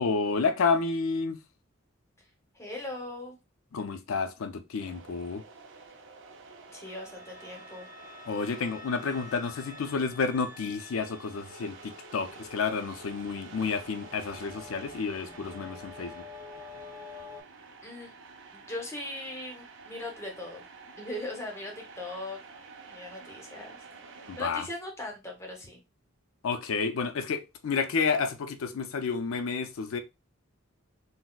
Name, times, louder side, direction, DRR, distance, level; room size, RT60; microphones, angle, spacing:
voice 1, 0.0-1.4 3.7-5.4 8.3-16.2 24.3-24.7 26.4-30.0, left 5 dB, 80° left, 0.4 m, -30 dB
voice 2, 2.5-3.4 6.7-7.9 17.8-18.1 18.5-20.6 21.0-22.4 22.9-25.8, left 1 dB, 15° left, 0.8 m, -39 dB
sound 1, 4.8-24.5, right 4 dB, 65° right, 0.5 m, -49 dB
sound 2, 6.8-17.4, left 5 dB, 20° right, 0.7 m, -49 dB
3.9 x 2.0 x 2.2 m
head